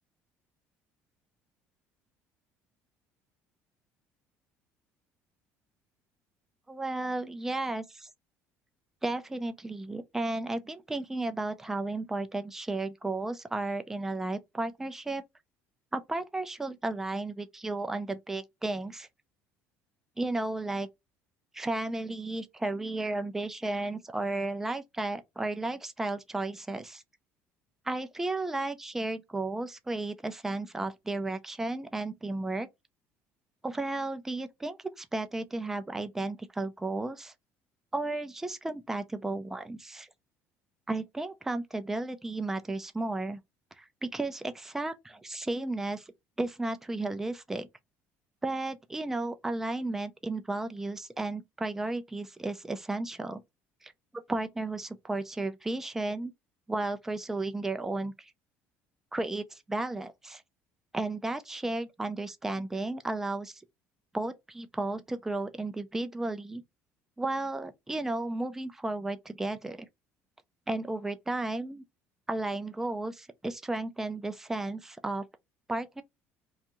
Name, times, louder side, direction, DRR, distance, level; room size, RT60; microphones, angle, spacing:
voice 1, 6.7-8.1 9.0-15.2 15.9-19.1 20.2-20.9 21.5-27.0 27.9-32.7 33.6-37.3 37.9-40.1 40.9-43.4 43.8-46.1 46.4-47.7 48.4-53.4 53.8-56.3 56.7-58.3 59.1-60.4 60.9-63.6 64.1-66.6 67.2-69.9 70.7-71.8 72.3-75.2 75.7-76.0, right 2 dB, 5° right, 0.4 m, -33 dB
2.6 x 2.3 x 2.9 m
cardioid pair, 145°, 5 cm